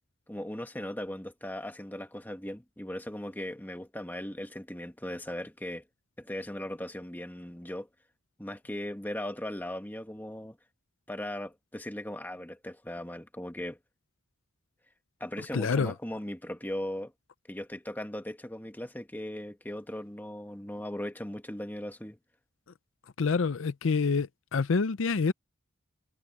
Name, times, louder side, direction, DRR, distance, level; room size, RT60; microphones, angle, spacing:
voice 1, 0.3-5.8 6.2-7.9 8.4-10.6 11.1-13.8 15.2-17.1 17.5-22.2, left 1 dB, 10° left, 1.4 m, -38 dB
voice 2, 15.5-15.9 23.2-25.3, left 4 dB, 65° left, 0.5 m, -27 dB
head